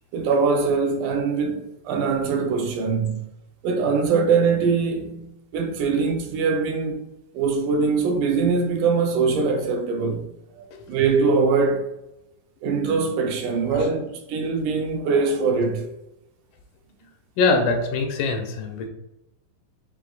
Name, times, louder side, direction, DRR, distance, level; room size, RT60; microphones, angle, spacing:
voice 1, 0.1-3.2 3.6-7.0 7.3-11.9 12.6-15.9, right 4 dB, 85° right, 2.2 m, -22 dB
voice 2, 17.4-18.9, left 3 dB, 85° left, 2.3 m, -23 dB
6.5 x 3.1 x 2.3 m
omnidirectional pair, 3.5 m